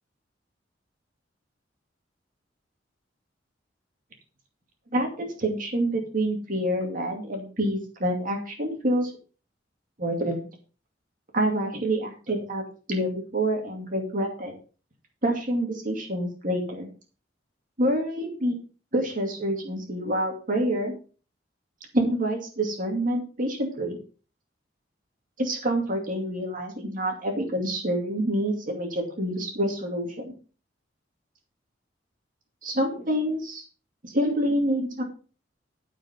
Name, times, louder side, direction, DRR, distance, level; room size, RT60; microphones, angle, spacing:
voice 1, 4.9-9.1 10.0-10.5 11.3-12.6 12.9-14.5 15.2-16.9 17.8-18.6 18.9-20.9 21.9-24.0 25.4-30.3 32.6-33.6 34.0-35.0, right 1 dB, 45° right, 2 dB, 2.4 m, -27 dB
13.5 x 5.1 x 5.9 m, 0.37 s
head